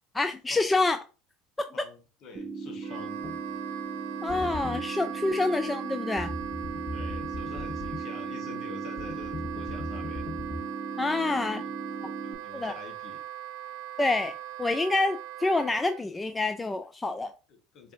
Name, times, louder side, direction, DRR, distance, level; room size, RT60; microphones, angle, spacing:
voice 1, 0.1-1.0 4.2-6.3 11.0-11.6 12.0-12.1 12.5-12.7 14.0-14.3 14.6-17.3, left 2 dB, 15° left, 0.3 m, -27 dB
voice 2, 1.7-3.2 6.9-10.3 11.2-11.7 12.2-13.2 17.5-17.9, left 5 dB, 55° left, 1.1 m, -47 dB
sound 1, 2.3-12.3, right 4 dB, 45° right, 0.8 m, -38 dB
Wind instrument woodwind instrument, 2.8-16.0, right 12 dB, 65° right, 0.3 m, -40 dB
sound 2, 3.2-3.4 4.3-4.8 6.2-8.0 9.0-10.6, left 2 dB, 30° left, 1.1 m, -38 dB
4.8 x 2.6 x 2.6 m
hypercardioid pair, 70°, 0 cm